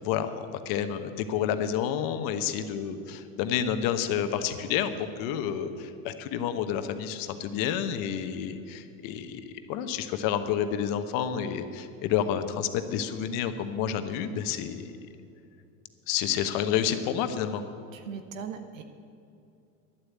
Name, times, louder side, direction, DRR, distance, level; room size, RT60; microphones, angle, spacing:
voice 1, 0.0-14.9 16.1-17.6, left 9 dB, 60° left, 9 dB, 1.1 m, -29 dB
voice 2, 17.9-18.8, right 7 dB, 85° right, 7 dB, 1.0 m, -39 dB
11.5 x 8.1 x 8.1 m, 2.6 s
hypercardioid pair, 95°, 39 cm